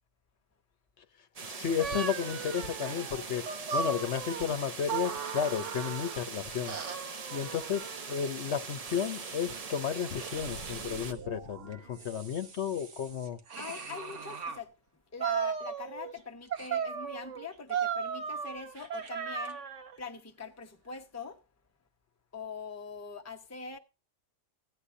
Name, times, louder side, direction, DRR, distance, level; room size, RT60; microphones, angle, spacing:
sound 1, 1.4-11.1, right 4 dB, 40° right, 0.7 m, -42 dB
voice 1, 1.5-3.4 3.7-6.8 7.3-13.4, left 8 dB, 65° left, 1.1 m, -33 dB
sound 2, 1.8-6.3 6.7-8.2 8.8-9.7 10.1-11.1 11.7-14.6 15.2-16.2 16.5-20.0, right 7 dB, 75° right, 1.4 m, -37 dB
sound 3, 10.3-12.9, right 3 dB, 55° right, 1.2 m, -49 dB
voice 2, 13.6-14.8 15.1-19.6 20.0-21.4 22.3-23.8, left 5 dB, 15° left, 0.8 m, -43 dB
16.5 x 9.9 x 2.6 m
omnidirectional pair, 1.3 m